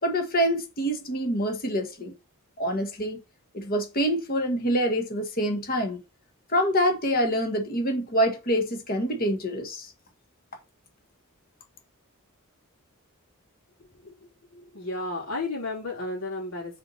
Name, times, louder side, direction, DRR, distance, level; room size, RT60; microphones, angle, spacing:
voice 1, 0.0-2.1 2.6-3.2 3.5-6.0 6.5-9.9, equal, 40° left, 1.5 m, -26 dB
voice 2, 14.0-16.8, left 2 dB, 70° left, 3.7 m, -33 dB
5.7 x 4.6 x 4.2 m
head